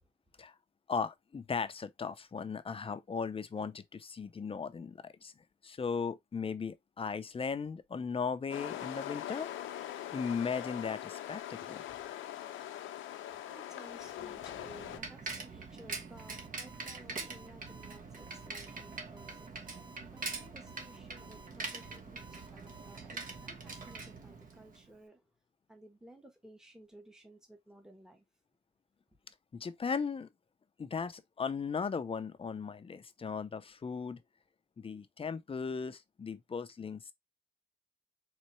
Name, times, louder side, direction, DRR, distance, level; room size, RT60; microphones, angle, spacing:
voice 1, 0.9-9.5 10.1-11.8 29.5-30.3 30.8-34.2 34.8-37.1, left 5 dB, 30° left, 0.6 m, -37 dB
sound 1, 8.5-15.0, left 12 dB, 80° left, 0.7 m, -42 dB
voice 2, 13.0-25.2 25.7-28.2, right 1 dB, 5° right, 1.2 m, -57 dB
Bicycle, 14.0-24.9, right 4 dB, 45° right, 1.3 m, -44 dB
Alarm, 16.2-24.0, right 1 dB, 25° right, 1.0 m, -56 dB
4.2 x 3.2 x 3.1 m
cardioid pair, 90°, 20 cm